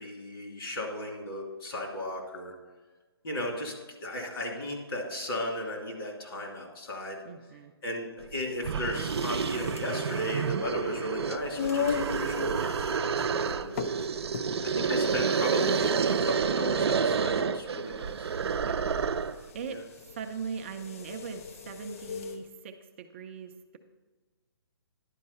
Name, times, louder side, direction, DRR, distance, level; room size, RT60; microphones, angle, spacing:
voice 1, 0.0-2.5 3.2-3.7 4.0-7.2 7.8-13.7 14.6-18.3 19.7-19.8, left 1 dB, 65° left, 0 dB, 2.8 m, -35 dB
voice 2, 7.2-7.7 18.4-18.8 19.5-23.8, right 6 dB, 30° right, 5 dB, 0.5 m, -40 dB
sound 1, 8.2-8.3 8.6-19.4, right 6 dB, 80° right, 0.5 m, -29 dB
sound 2, 8.9-22.4, left 7 dB, 35° left, 0.4 m, -39 dB
10.5 x 4.6 x 5.5 m, 1.3 s
hypercardioid pair, 160°, 13 cm